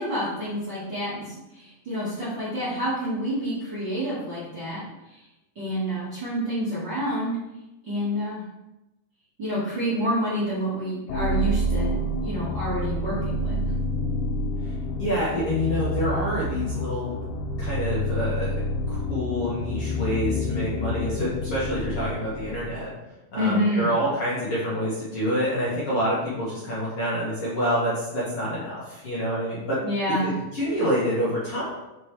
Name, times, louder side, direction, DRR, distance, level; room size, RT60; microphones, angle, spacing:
voice 1, 0.0-4.8 5.5-7.3 7.8-8.4 9.4-13.6 23.4-23.9 29.8-30.3, equal, 75° right, -11 dB, 1.0 m, -28 dB
sound 1, 11.1-23.0, left 1 dB, 85° left, 2.9 m, -28 dB
voice 2, 15.0-17.1 17.6-18.6 18.9-22.9 23.3-29.8 30.2-31.6, equal, 60° left, -9 dB, 1.6 m, -27 dB
6.2 x 5.3 x 3.2 m, 0.98 s
omnidirectional pair, 5.1 m